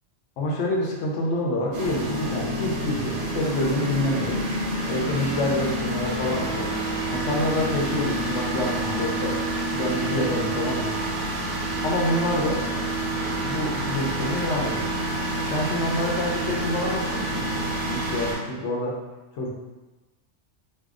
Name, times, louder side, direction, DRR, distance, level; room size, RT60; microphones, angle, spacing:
voice 1, 0.4-4.4 4.9-6.7 7.1-9.4 9.7-11.0 11.8-12.6 13.1-14.9 15.4-17.5 17.8-19.0 19.4-19.5, left 1 dB, 80° left, -1 dB, 1.0 m, -27 dB
sound 1, 1.7-18.3, right 1 dB, 75° right, 1.1 m, -28 dB
3.5 x 2.3 x 2.4 m, 1.1 s
omnidirectional pair, 1.2 m